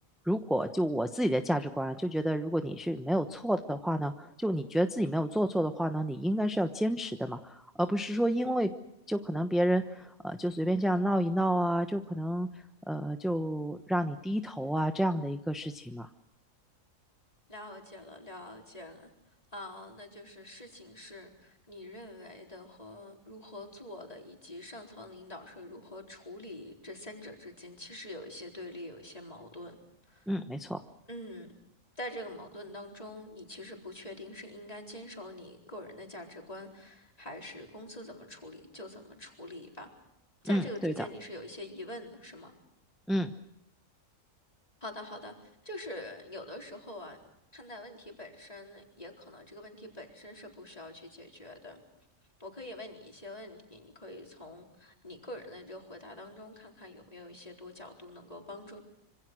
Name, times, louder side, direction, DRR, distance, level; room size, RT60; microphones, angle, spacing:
voice 1, 0.3-8.7 9.1-12.5 12.9-16.1 30.3-30.8 40.4-41.0 43.1-43.3, equal, ahead, 7 dB, 0.9 m, -30 dB
voice 2, 17.5-19.1 19.5-29.8 30.1-30.3 31.1-31.5 32.0-39.9 40.4-42.5 44.8-47.2 47.5-51.8 52.4-58.8, left 1 dB, 30° left, 2 dB, 4.3 m, -45 dB
26.5 x 25.5 x 6.3 m, 0.81 s
omnidirectional pair, 1.4 m